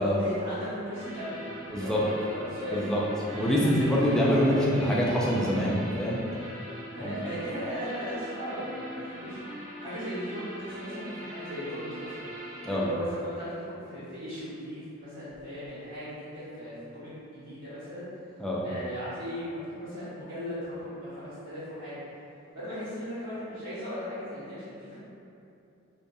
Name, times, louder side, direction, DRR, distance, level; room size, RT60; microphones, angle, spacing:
voice 1, 0.0-2.7 3.6-3.7 4.0-4.8 6.9-9.4 9.8-12.2 12.7-18.1 18.6-21.9 22.5-25.0, equal, 65° right, -19 dB, 1.2 m, -37 dB
sound 1, 0.8-12.8, equal, 40° right, 1.1 m, -41 dB
voice 2, 1.7-2.0 2.7-3.0 3.3-6.2 7.0-7.1 12.6-12.8 18.4-18.7, equal, 5° left, -6 dB, 0.3 m, -25 dB
2.5 x 2.2 x 2.6 m, 2.7 s
head